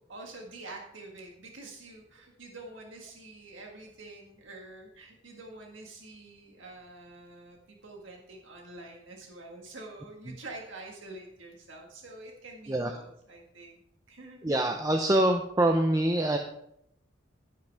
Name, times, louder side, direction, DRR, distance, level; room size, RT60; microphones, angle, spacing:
voice 1, 0.0-13.8 14.1-14.7, right 2 dB, 75° right, 0 dB, 1.7 m, -47 dB
voice 2, 14.4-16.4, right 1 dB, 15° right, 4 dB, 0.6 m, -25 dB
10.5 x 10.5 x 3.5 m, 0.74 s
head